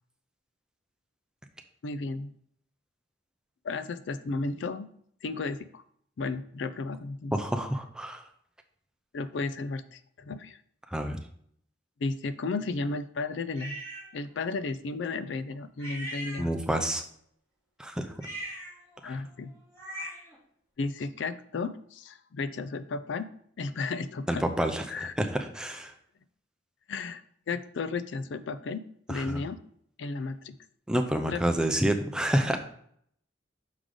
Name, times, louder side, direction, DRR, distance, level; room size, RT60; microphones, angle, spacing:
voice 1, 1.8-2.3 3.6-4.9 5.2-5.8 6.2-7.3 9.1-10.6 12.0-13.8 14.1-16.6 19.0-19.5 20.8-23.3 23.6-24.4 24.9-25.1 26.9-27.2 27.5-28.8 29.1-29.6 30.0-30.6 31.3-31.6, left 3 dB, 65° left, 12 dB, 0.4 m, -33 dB
voice 2, 7.3-8.2 10.9-11.2 16.4-17.0 17.8-18.1 19.0-19.1 24.3-25.9 29.1-29.4 30.9-32.6, right 1 dB, 5° right, 5 dB, 0.5 m, -28 dB
sound 1, 13.6-14.1 15.8-16.9 18.1-20.4, right 1 dB, 15° left, 2.3 m, -41 dB
6.3 x 4.9 x 3.8 m, 0.65 s
head